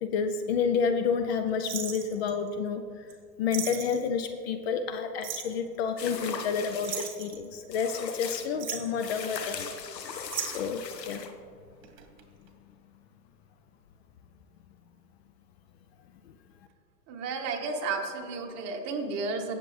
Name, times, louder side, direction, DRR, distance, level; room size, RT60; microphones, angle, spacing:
voice 1, 0.0-3.0 3.4-9.7 10.4-11.2 16.3-16.4, left 6 dB, 40° left, 7 dB, 0.6 m, -30 dB
sound 1, 1.6-2.5 3.1-3.2 3.5-4.0 5.2-5.6 6.8-7.9 8.4-9.0 10.3-10.8 11.8-12.2 12.5-12.6, right 8 dB, 50° right, 1.6 m, -36 dB
sound 2, 6.0-7.1 7.7-8.5 9.0-11.3, left 6 dB, 75° left, 1.1 m, -39 dB
voice 2, 17.1-19.5, right 4 dB, 30° right, 2 dB, 1.4 m, -32 dB
17.0 x 6.9 x 3.3 m, 2.3 s
hypercardioid pair, 115°, 50 cm